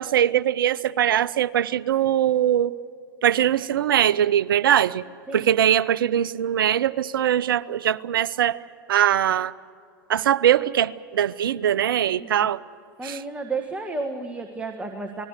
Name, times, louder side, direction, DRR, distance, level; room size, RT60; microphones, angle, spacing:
voice 1, 0.0-2.7 3.2-5.0 5.3-8.6 8.9-9.5 10.1-12.6 13.0-13.2, right 10 dB, 75° right, 16 dB, 0.7 m, -21 dB
voice 2, 12.2-12.5 13.0-15.3, right 3 dB, 10° right, 4 dB, 1.7 m, -32 dB
29.0 x 20.5 x 6.7 m, 2.4 s
hypercardioid pair, 100°, 12 cm